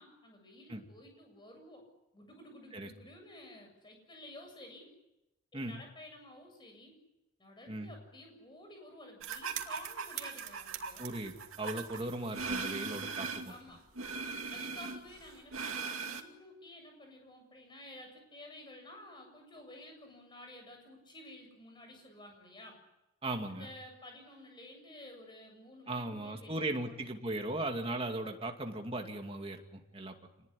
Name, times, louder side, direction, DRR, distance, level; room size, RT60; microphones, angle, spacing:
voice 1, 0.0-1.8 2.1-4.9 5.5-7.0 7.4-11.1 13.5-13.8 14.5-22.8 23.5-27.1, left 1 dB, 20° left, 3 dB, 7.7 m, -52 dB
sound 1, 9.2-13.6 13.9-16.2, right 5 dB, 75° right, 2.5 m, -39 dB
voice 2, 11.0-13.5 23.2-23.7 25.9-30.1, right 2 dB, 25° right, 3 dB, 2.5 m, -38 dB
27.5 x 20.0 x 10.0 m, 0.94 s
head